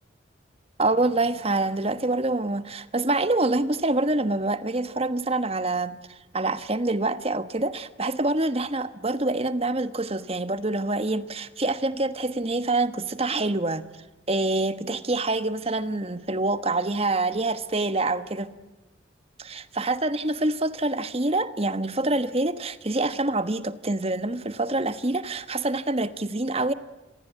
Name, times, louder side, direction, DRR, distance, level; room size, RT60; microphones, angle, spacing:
voice 1, 0.8-6.0 6.3-13.8 14.3-18.5 19.4-26.7, right 2 dB, 30° right, 1.3 m, -26 dB
28.0 x 22.5 x 9.2 m
head